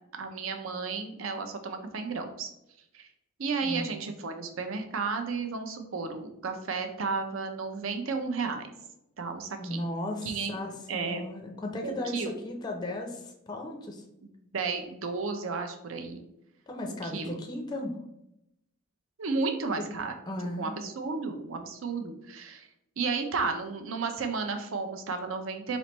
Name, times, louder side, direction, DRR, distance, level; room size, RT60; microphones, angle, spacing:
voice 1, 0.1-2.5 2.9-3.1 3.4-8.7 9.2-9.8 10.2-10.5 10.9-11.2 11.8-12.3 14.2-16.2 16.8-17.4 19.2-20.1 20.6-22.7 23.0-25.8, right 4 dB, 70° right, 6 dB, 0.5 m, -33 dB
voice 2, 3.6-3.9 9.6-14.0 16.7-18.0 19.8-19.9 20.3-20.7, left 1 dB, 20° left, 3 dB, 0.4 m, -36 dB
4.1 x 3.1 x 3.0 m, 0.83 s
head